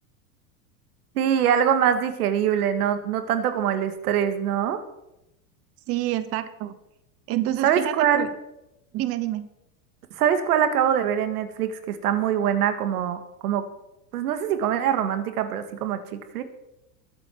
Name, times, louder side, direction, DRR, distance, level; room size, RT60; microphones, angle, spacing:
voice 1, 1.2-4.8 7.6-8.3 10.1-13.7 14.1-16.4, right 9 dB, 90° right, 9 dB, 1.9 m, -23 dB
voice 2, 5.9-6.8 7.3-8.3 8.9-9.5, right 14 dB, 35° right, 12 dB, 0.8 m, -28 dB
21.0 x 8.2 x 4.6 m, 0.90 s
supercardioid pair, 145°, 44 cm